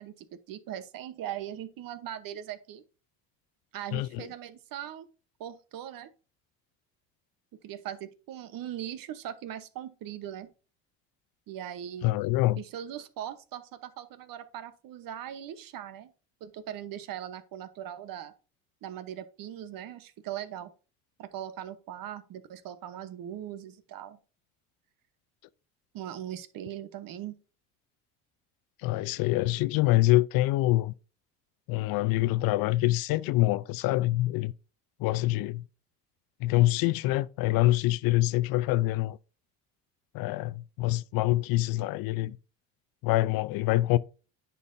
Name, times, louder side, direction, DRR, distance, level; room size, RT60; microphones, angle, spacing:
voice 1, 0.0-2.8 3.7-5.1 5.4-6.1 7.6-10.5 11.5-12.1 12.6-16.1 16.4-18.3 18.8-20.7 21.2-24.2 25.9-27.4, right 11 dB, 55° right, 1.0 m, -40 dB
voice 2, 3.9-4.2 12.0-12.6 28.8-30.9 31.7-34.5 35.0-35.6 36.4-39.2 40.1-42.4 43.0-44.0, left 17 dB, 60° left, 0.5 m, -25 dB
9.9 x 5.5 x 2.6 m
supercardioid pair, 80°, 40 cm